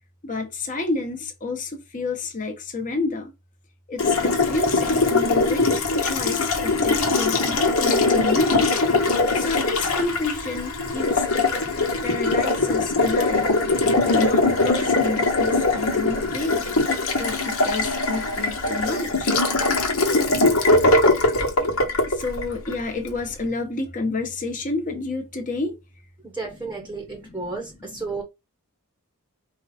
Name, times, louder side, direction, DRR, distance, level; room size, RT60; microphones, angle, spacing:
voice 1, 0.2-3.3 3.9-8.7 9.3-11.6 12.0-13.5 14.0-16.7 17.2-19.3 22.1-25.8 27.1-28.0, left 3 dB, 35° left, 1.1 m, -30 dB
Water tap faucet, 4.0-23.1, left 2 dB, 70° left, 1.2 m, -21 dB
voice 2, 26.3-28.2, right 3 dB, 10° right, 0.9 m, -32 dB
4.7 x 2.4 x 4.2 m
head